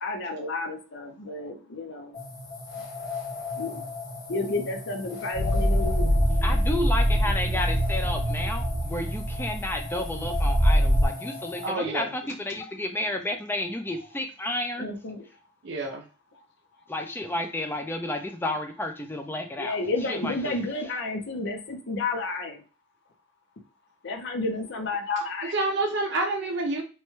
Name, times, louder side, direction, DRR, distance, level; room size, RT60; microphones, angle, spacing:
voice 1, 0.0-2.1 3.6-3.8 4.3-6.2 14.8-15.2 19.6-22.6 24.0-25.5, left 3 dB, 60° left, 5 dB, 0.6 m, -31 dB
sound 1, 2.1-11.7, left 3 dB, 90° left, 1.0 m, -37 dB
sound 2, 5.3-11.1, equal, 25° right, 0.9 m, -24 dB
voice 2, 6.4-14.9 16.9-19.8 20.1-20.6, left 1 dB, 10° left, 4 dB, 0.4 m, -31 dB
voice 3, 11.6-12.1 15.6-16.0 25.5-26.8, right 2 dB, 60° right, 2 dB, 0.5 m, -28 dB
3.1 x 2.2 x 3.0 m, 0.35 s
head